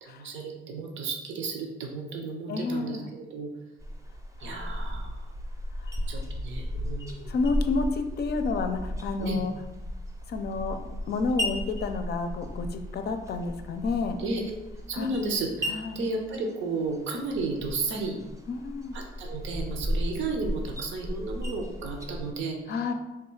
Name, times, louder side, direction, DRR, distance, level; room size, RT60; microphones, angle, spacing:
voice 1, 0.0-3.5 4.4-5.1 6.1-7.3 9.2-9.4 11.2-11.4 14.2-14.6 14.9-18.2 18.9-22.9, right 3 dB, 70° right, 3 dB, 0.7 m, -33 dB
voice 2, 2.5-3.1 4.4-5.0 5.8-6.2 7.3-9.5 10.3-10.8 11.1-14.2 14.9-15.1 15.7-16.0 18.5-19.0 22.7-22.9, left 4 dB, 55° left, 7 dB, 0.5 m, -30 dB
sound 1, 3.8-22.3, equal, 15° right, 0.6 m, -35 dB
3.5 x 2.3 x 4.4 m, 1.0 s
cardioid pair, 90°, 20 cm